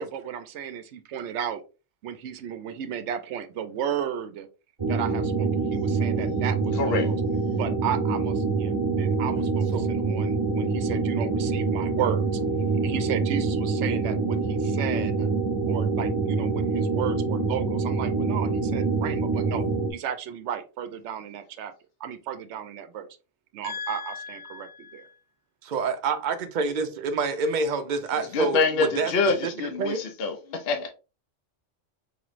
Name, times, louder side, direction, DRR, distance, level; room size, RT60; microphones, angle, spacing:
voice 1, 0.0-1.6 2.0-4.5 4.9-7.1 7.5-12.2 12.8-15.3 15.7-19.6 19.9-21.7 22.0-23.1 23.5-24.7, right 9 dB, 75° right, 0.9 m, -34 dB
sound 1, 4.8-19.9, right 4 dB, 25° right, 1.0 m, -25 dB
voice 2, 6.8-7.1 23.6-24.6 28.3-30.9, left 4 dB, 60° left, 0.9 m, -27 dB
voice 3, 25.6-28.6 29.0-29.1 29.8-30.0, right 4 dB, 50° right, 0.6 m, -27 dB
4.8 x 3.0 x 2.5 m
omnidirectional pair, 1.2 m